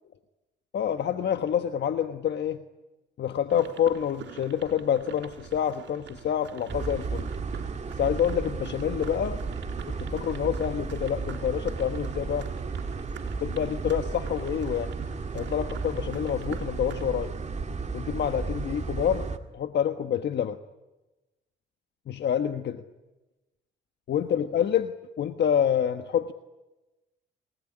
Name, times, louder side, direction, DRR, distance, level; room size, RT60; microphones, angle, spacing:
voice 1, 0.7-2.6 3.2-7.3 8.0-9.4 9.9-12.5 13.4-14.9 15.3-17.3 17.9-20.6 22.1-22.8 24.1-26.3, left 9 dB, 60° left, 8 dB, 1.2 m, -27 dB
sound 1, 3.5-17.0, right 8 dB, 70° right, 4.0 m, -46 dB
sound 2, 6.7-19.4, right 4 dB, 35° right, 2.1 m, -34 dB
28.0 x 19.0 x 9.9 m, 1.1 s
cardioid pair, 90°, 20 cm